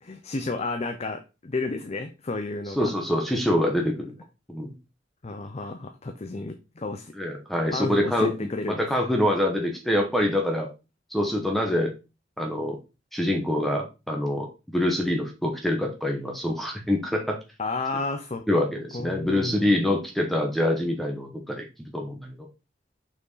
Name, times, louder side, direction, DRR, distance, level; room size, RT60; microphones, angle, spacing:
voice 1, 0.0-2.9 5.2-7.1 7.7-8.9 17.6-18.5 18.9-19.8, left 3 dB, 35° left, 7 dB, 0.6 m, -32 dB
voice 2, 2.8-4.1 4.5-4.7 7.1-8.3 8.7-10.7 11.1-11.9 12.4-12.8 13.1-14.5 14.7-17.4 18.5-22.3, left 1 dB, ahead, 1 dB, 1.1 m, -25 dB
5.9 x 4.6 x 4.0 m, 0.28 s
head